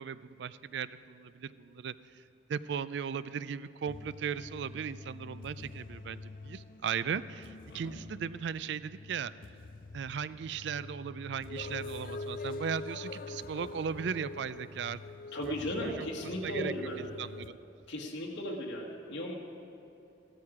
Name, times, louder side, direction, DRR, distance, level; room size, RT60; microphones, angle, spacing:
voice 1, 0.0-1.9 2.5-9.3 9.9-15.0 15.8-16.7 17.2-17.6, right 7 dB, 65° right, 16 dB, 0.3 m, -37 dB
sound 1, 3.8-17.5, left 3 dB, 50° left, 0.5 m, -45 dB
voice 2, 15.3-17.2 17.9-19.3, equal, 75° left, -2 dB, 1.4 m, -36 dB
15.0 x 13.0 x 4.8 m, 2.9 s
head